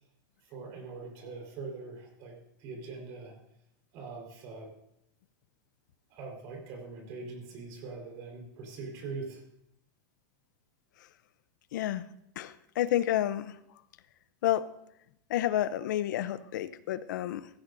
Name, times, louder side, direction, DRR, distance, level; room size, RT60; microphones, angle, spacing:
voice 1, 0.5-3.3 3.9-4.7 6.1-9.4, right 4 dB, 40° right, 0 dB, 4.2 m, -42 dB
voice 2, 11.7-12.1 12.4-13.6 14.4-14.6 15.3-17.5, left 12 dB, 75° left, 15 dB, 0.7 m, -30 dB
16.5 x 16.0 x 2.6 m, 0.77 s
supercardioid pair, 175°, 10 cm